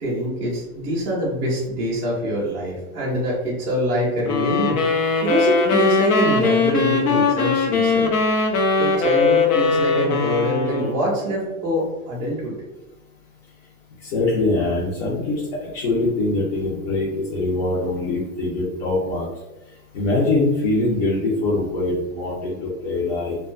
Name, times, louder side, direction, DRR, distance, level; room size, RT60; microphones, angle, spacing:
voice 1, 0.0-4.8 5.2-8.1 8.7-12.5, right 1 dB, 15° right, -10 dB, 0.3 m, -24 dB
sound 1, 4.3-11.1, left 4 dB, 90° left, 0.6 m, -20 dB
voice 2, 14.0-19.3 19.9-23.4, left 2 dB, 40° left, -6 dB, 0.5 m, -23 dB
2.6 x 2.2 x 2.4 m, 1.0 s
supercardioid pair, 165°, 44 cm